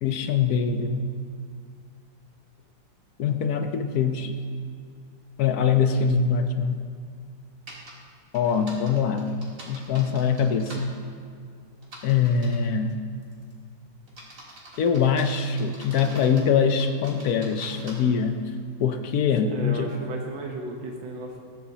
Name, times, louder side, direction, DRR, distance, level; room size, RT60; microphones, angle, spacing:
voice 1, 0.0-1.0 3.2-4.3 5.4-6.8 8.3-9.3 9.7-10.9 12.0-13.0 14.8-18.4 18.8-19.9, left 6 dB, 65° left, 7 dB, 1.0 m, -23 dB
sound 1, 7.7-7.9 8.3-10.8 11.8-12.6 13.2-13.5 14.1-16.5 16.8-17.9, right 1 dB, 45° right, 2.2 m, -45 dB
voice 2, 19.5-21.4, right 2 dB, 90° right, 1 dB, 1.8 m, -34 dB
21.0 x 8.1 x 2.8 m, 2.1 s
omnidirectional pair, 2.0 m